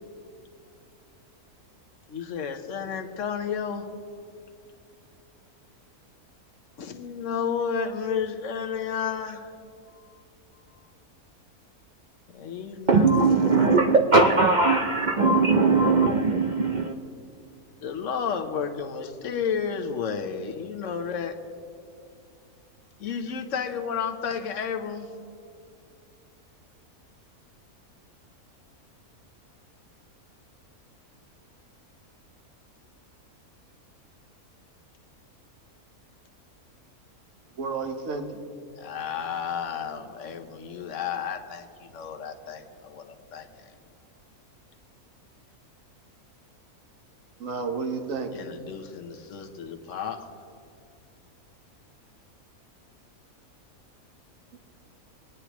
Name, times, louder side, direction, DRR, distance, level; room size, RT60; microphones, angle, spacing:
voice 1, 2.1-3.9 6.8-9.5 12.3-13.3 17.8-21.4 23.0-25.1 38.8-43.5 48.3-50.3, left 6 dB, 60° left, 5 dB, 1.2 m, -32 dB
voice 2, 12.9-16.9, right 3 dB, 80° right, 4 dB, 0.4 m, -20 dB
voice 3, 37.5-38.4 47.4-48.5 54.5-54.6, right 4 dB, 60° right, 5 dB, 1.4 m, -31 dB
23.5 x 9.7 x 3.0 m, 2.4 s
omnidirectional pair, 1.6 m